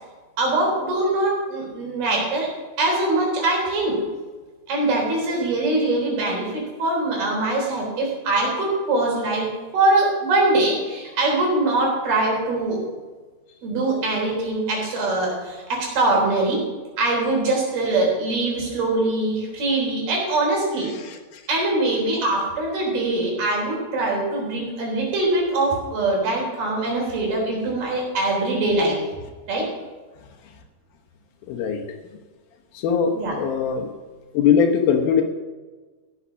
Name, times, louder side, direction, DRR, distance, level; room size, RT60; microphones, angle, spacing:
voice 1, 0.4-2.5 2.8-4.0 4.7-12.8 13.6-16.6 17.0-20.9 21.5-29.0 29.5-29.7 33.2-33.3, right 2 dB, 65° right, -1 dB, 5.6 m, -22 dB
voice 2, 21.0-21.4 31.5-31.8 32.7-33.9 34.3-35.2, left 7 dB, 70° left, 3 dB, 2.8 m, -21 dB
15.5 x 8.4 x 6.2 m, 1.3 s
omnidirectional pair, 4.6 m